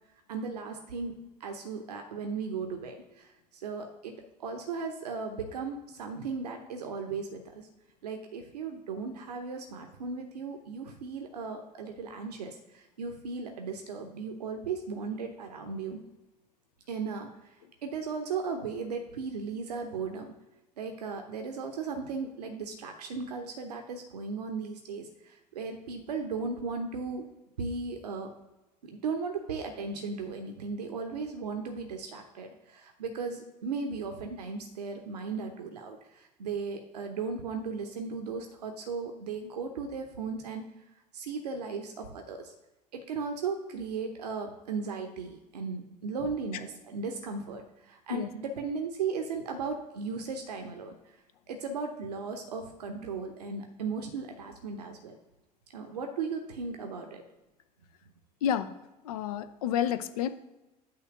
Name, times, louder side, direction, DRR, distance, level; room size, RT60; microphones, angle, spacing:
voice 1, 0.3-7.7 8.0-16.0 16.9-17.5 17.8-20.3 20.8-27.2 27.6-28.3 28.8-40.6 41.1-42.5 42.9-50.9 51.5-55.2 55.7-57.2, right 4 dB, 70° right, 4 dB, 0.8 m, -36 dB
voice 2, 59.1-60.3, left 9 dB, 60° left, 11 dB, 0.7 m, -29 dB
8.8 x 3.2 x 6.0 m, 1.0 s
figure-of-eight pair, 65°, 21 cm